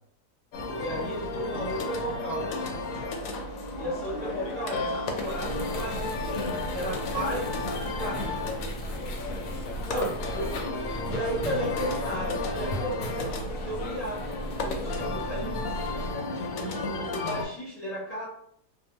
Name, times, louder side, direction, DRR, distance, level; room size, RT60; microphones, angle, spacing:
sound 1, 0.5-17.5, left 3 dB, 70° left, 0.8 m, -33 dB
voice 1, 0.7-2.5 3.7-8.6 9.3-9.4 9.8-10.7 11.0-15.6 16.6-18.2, right 1 dB, 30° left, -9 dB, 0.7 m, -35 dB
sound 2, 5.1-16.1, equal, 85° left, 1.2 m, -36 dB
2.8 x 2.1 x 2.8 m, 0.67 s
omnidirectional pair, 1.7 m